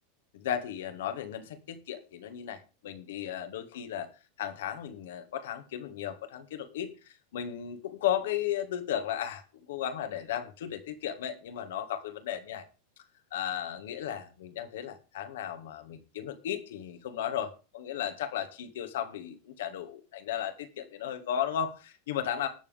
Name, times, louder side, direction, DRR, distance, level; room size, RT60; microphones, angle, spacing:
voice 1, 0.3-4.1 4.4-12.7 13.3-22.5, left 10 dB, 65° left, 8 dB, 2.0 m, -35 dB
19.5 x 6.9 x 3.6 m, 0.33 s
figure-of-eight pair, 90°, 0 cm